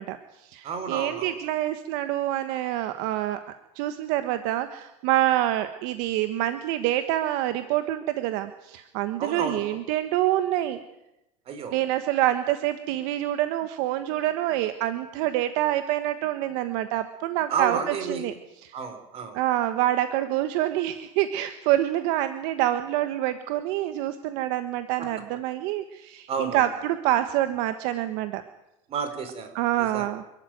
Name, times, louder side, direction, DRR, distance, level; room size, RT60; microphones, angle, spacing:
voice 1, 0.0-3.4 3.7-10.8 11.7-18.3 18.6-18.7 19.3-28.4 29.5-30.2, right 13 dB, 65° right, 10 dB, 1.4 m, -26 dB
voice 2, 0.6-1.3 9.2-9.6 11.5-11.8 17.5-18.2 18.7-19.4 25.0-25.1 26.3-26.7 28.9-30.1, right 5 dB, 35° right, 8 dB, 4.5 m, -31 dB
27.5 x 13.0 x 9.3 m, 0.91 s
supercardioid pair, 135°, 16 cm